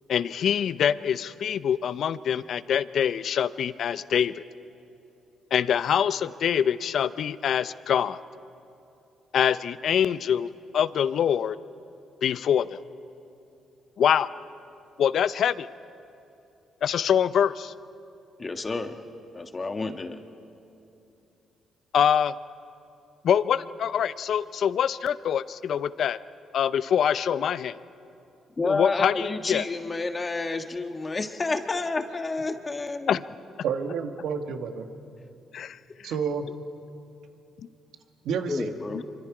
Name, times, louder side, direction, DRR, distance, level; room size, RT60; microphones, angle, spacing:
voice 1, 0.1-4.3 5.5-8.2 9.3-11.6 12.2-12.8 14.0-14.3 15.0-15.7 16.8-17.7 21.9-22.3 23.2-26.2 26.5-27.8 28.6-29.6 33.1-33.2 35.5-36.1, left 8 dB, 65° left, 16 dB, 0.5 m, -24 dB
voice 2, 18.4-18.9 19.3-20.2 28.6-33.2 38.5-39.1, left 3 dB, 30° left, 6 dB, 1.4 m, -30 dB
voice 3, 33.6-34.8 36.0-36.4 38.2-38.7, right 6 dB, 80° right, 5 dB, 1.6 m, -29 dB
26.0 x 24.0 x 5.0 m, 2.8 s
cardioid pair, 90°, 0 cm